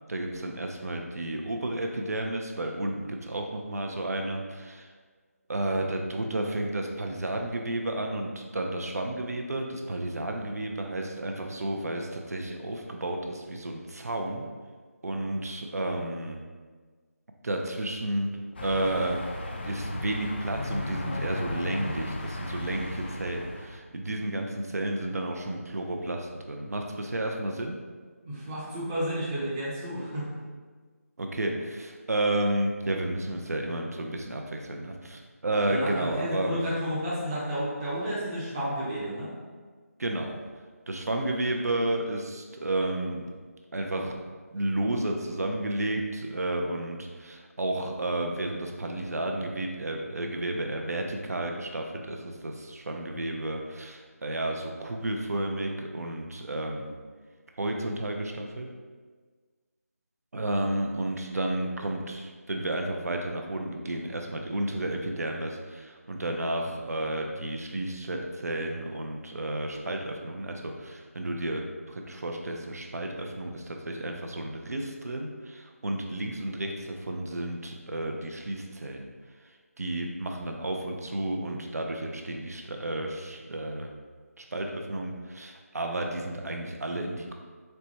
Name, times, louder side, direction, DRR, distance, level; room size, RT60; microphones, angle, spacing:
voice 1, 0.1-4.9 5.5-14.5 15.0-16.4 17.4-18.3 18.6-19.2 19.6-27.8 31.2-36.6 40.0-40.3 40.9-43.3 43.7-44.2 44.5-57.0 57.6-58.7 60.3-79.1 79.8-83.9 84.4-87.3, right 1 dB, 75° right, 2 dB, 0.4 m, -32 dB
sound 1, 18.6-23.8, left 1 dB, 40° left, 0.3 m, -35 dB
voice 2, 28.2-30.3 35.7-39.3, equal, 15° right, -8 dB, 0.5 m, -31 dB
4.3 x 2.1 x 2.8 m, 1.5 s
figure-of-eight pair, 165°, 8 cm